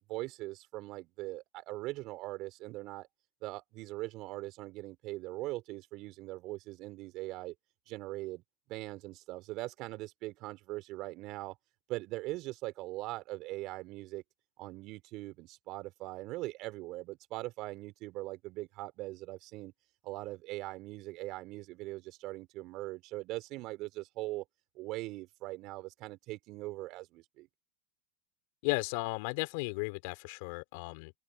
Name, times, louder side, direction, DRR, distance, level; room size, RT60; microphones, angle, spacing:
voice 1, 0.0-3.1 3.4-7.5 7.9-8.4 8.7-11.5 11.9-14.2 14.6-19.7 20.0-24.4 24.7-27.5, right 19 dB, 50° right, 4.6 m, -41 dB
voice 2, 28.6-31.1, left 29 dB, 65° left, 4.6 m, -35 dB
open air
hypercardioid pair, 105°, 0 cm